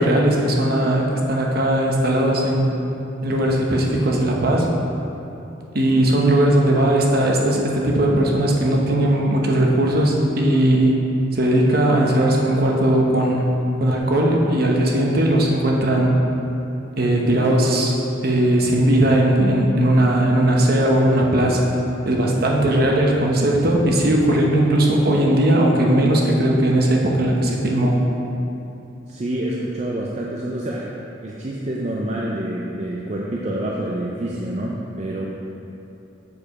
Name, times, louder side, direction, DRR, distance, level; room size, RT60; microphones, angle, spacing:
voice 1, 0.0-2.7 3.2-4.7 5.7-11.0 11.3-13.5 13.8-16.2 17.0-21.7 22.0-28.0, right 1 dB, 55° right, -1 dB, 0.9 m, -18 dB
voice 2, 29.1-30.9 31.2-35.3, right 1 dB, 35° right, -3 dB, 0.5 m, -27 dB
7.2 x 4.8 x 4.8 m, 3.0 s
head